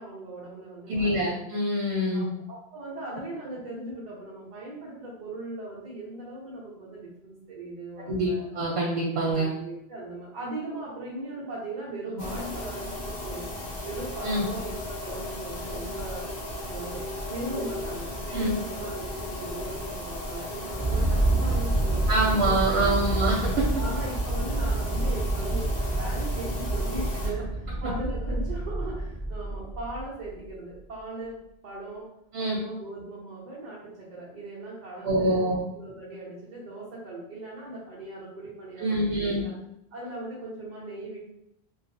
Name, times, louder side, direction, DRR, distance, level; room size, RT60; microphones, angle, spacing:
voice 1, 0.0-1.3 2.1-8.5 9.3-13.5 13.8-16.3 16.7-17.0 17.3-22.1 22.4-22.9 23.8-31.4 31.6-32.1 32.4-39.5 39.9-41.2, right 2 dB, 50° right, -8 dB, 0.7 m, -39 dB
voice 2, 0.9-2.3 8.1-9.5 14.2-14.5 18.3-18.5 22.1-23.7 32.3-32.6 35.0-35.6 38.8-39.4, right 1 dB, 85° right, -5 dB, 0.9 m, -25 dB
sound 1, 12.2-27.3, left 1 dB, 60° left, 0.9 m, -36 dB
sound 2, 20.7-30.3, right 2 dB, 25° left, 1.3 m, -28 dB
2.6 x 2.4 x 2.6 m, 0.82 s
omnidirectional pair, 1.0 m